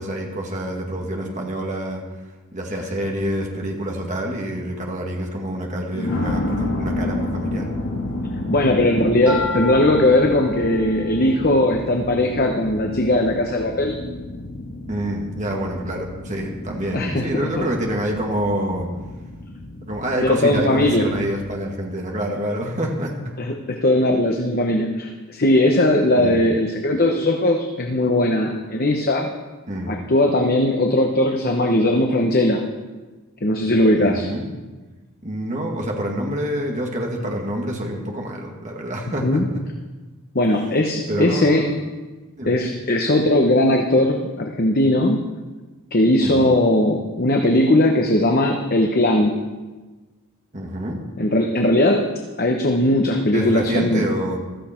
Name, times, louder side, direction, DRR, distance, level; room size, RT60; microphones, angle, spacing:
voice 1, 0.0-2.0 2.5-7.7 14.9-18.9 19.8-23.3 26.2-26.4 29.7-30.0 34.0-34.5 35.2-39.4 41.1-41.8 42.4-42.6 46.2-46.5 50.5-51.0 53.3-54.4, equal, 35° right, 0 dB, 2.0 m, -27 dB
sound 1, 3.2-3.4 4.1-4.2 5.9-21.5, left 1 dB, 70° left, 2.6 m, -31 dB
voice 2, 8.5-14.0 16.9-17.3 17.6-17.7 20.2-21.1 23.4-29.3 29.9-32.7 33.4-34.3 39.2-39.5 40.3-41.7 42.4-45.3 45.9-49.3 51.2-52.1 52.4-54.1, left 1 dB, 40° left, 2 dB, 1.0 m, -19 dB
sound 2, 9.3-13.3, left 2 dB, 5° right, 3.2 m, -33 dB
15.5 x 13.5 x 4.5 m, 1.2 s
head